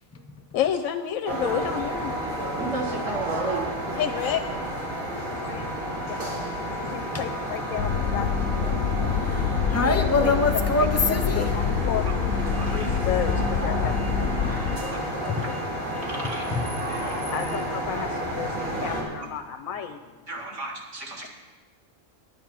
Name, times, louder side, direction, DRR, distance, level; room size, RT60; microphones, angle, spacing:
voice 1, 0.5-2.1 4.0-4.4 5.4-5.8 6.1-6.4 6.8-8.4 9.8-9.9 10.2-10.3 10.8-10.9 11.3-12.1 12.7-14.4 14.6-14.9 15.2-15.4 17.1-20.0, left 9 dB, 85° left, 6 dB, 1.0 m, -31 dB
sound 1, 1.3-19.0, equal, 75° right, 2.9 m, -31 dB
voice 2, 2.6-3.6 12.6-12.9 14.9-15.0 16.0-16.4 20.3-21.3, right 3 dB, 60° right, 0 dB, 2.2 m, -33 dB
voice 3, 6.8-7.2 9.2-11.8 15.3-15.5 16.5-16.6, left 3 dB, 20° left, 6 dB, 0.4 m, -25 dB
sound 2, 7.8-14.8, left 6 dB, 55° left, 0.7 m, -26 dB
10.0 x 9.6 x 5.9 m, 1.3 s
omnidirectional pair, 1.4 m